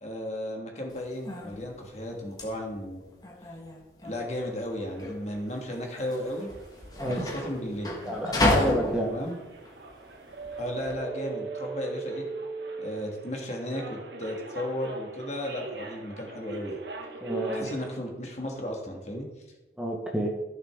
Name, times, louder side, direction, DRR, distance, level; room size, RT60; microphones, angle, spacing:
voice 1, 0.0-3.0 4.0-6.5 7.0-8.0 9.0-9.4 10.6-12.3 12.8-16.8 17.5-19.3, left 1 dB, 40° left, 1 dB, 1.7 m, -34 dB
sound 1, 0.9-11.0, left 1 dB, 20° left, 1.4 m, -32 dB
sound 2, 4.0-17.9, right 3 dB, 80° right, 1.3 m, -41 dB
voice 2, 8.0-9.2 17.2-17.7 19.8-20.3, equal, 5° right, -1 dB, 1.2 m, -29 dB
14.5 x 6.3 x 3.6 m, 1.1 s
head